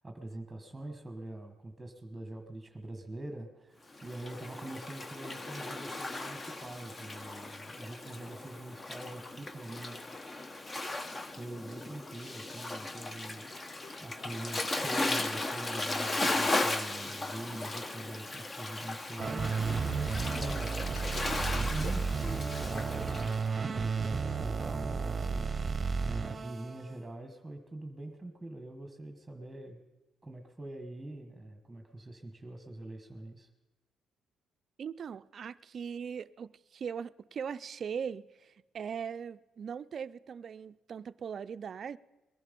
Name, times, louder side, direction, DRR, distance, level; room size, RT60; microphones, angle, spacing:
voice 1, 0.0-10.1 11.4-13.5 14.0-29.8 30.2-33.5, right 1 dB, 10° right, 1.4 m, -44 dB
Waves surf, 3.9-23.4, left 2 dB, 30° left, 0.9 m, -36 dB
sound 1, 16.9-17.8 18.3-18.5 18.9-23.3, left 3 dB, 75° left, 1.6 m, -53 dB
sound 2, 19.2-26.9, right 5 dB, 35° right, 0.8 m, -33 dB
voice 2, 34.8-42.0, right 7 dB, 55° right, 0.4 m, -40 dB
20.0 x 11.0 x 5.3 m
cardioid pair, 90°, 0 cm